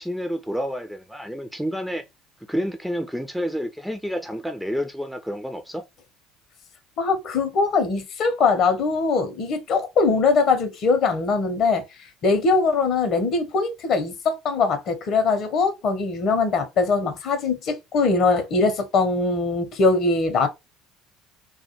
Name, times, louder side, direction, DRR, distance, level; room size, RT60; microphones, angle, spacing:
voice 1, 0.0-2.0 2.5-5.8, equal, ahead, 0.3 m, -29 dB
voice 2, 7.0-11.8 12.2-20.5, left 4 dB, 50° left, 0.5 m, -21 dB
2.2 x 2.1 x 2.8 m
figure-of-eight pair, 60°, 0 cm